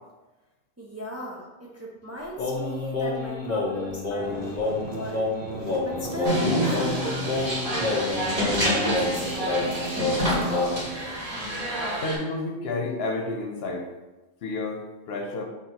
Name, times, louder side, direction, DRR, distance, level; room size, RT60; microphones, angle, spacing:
voice 1, 0.8-5.3 5.8-10.8, right 1 dB, 20° right, -3 dB, 0.5 m, -37 dB
Singing, 2.4-11.0, left 3 dB, 50° left, 1.0 m, -29 dB
sound 1, 4.2-10.8, right 3 dB, 65° right, 0.8 m, -41 dB
sound 2, 6.2-12.2, equal, 35° right, 1.7 m, -27 dB
voice 2, 12.0-13.9 14.4-15.4, left 2 dB, 75° left, 2 dB, 0.9 m, -30 dB
6.1 x 2.9 x 2.8 m, 1.1 s
omnidirectional pair, 1.1 m